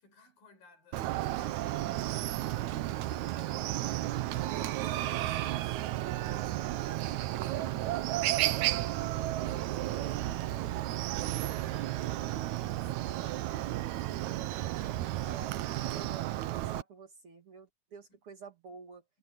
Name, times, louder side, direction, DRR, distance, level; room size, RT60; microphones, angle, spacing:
voice 1, 0.0-6.1 6.4-14.7 18.1-18.2, left 2 dB, 80° left, 8.3 m, -62 dB
Chicken rooster, 0.9-16.8, right 14 dB, 75° right, 1.9 m, -33 dB
voice 2, 6.9-7.3 15.2-19.0, right 5 dB, 45° right, 2.4 m, -50 dB
omnidirectional pair, 4.0 m